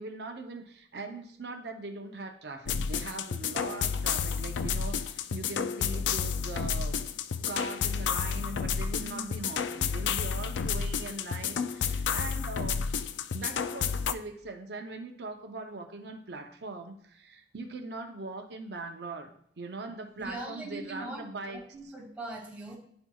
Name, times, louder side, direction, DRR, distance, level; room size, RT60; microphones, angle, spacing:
voice 1, 0.0-7.1 7.5-12.8 13.3-21.9, right 3 dB, 65° right, 4 dB, 0.7 m, -41 dB
sound 1, 2.7-14.1, left 6 dB, 90° left, 0.4 m, -31 dB
voice 2, 9.0-9.4 20.2-22.8, right 1 dB, 10° right, -5 dB, 2.0 m, -41 dB
11.0 x 4.4 x 2.3 m, 0.66 s
head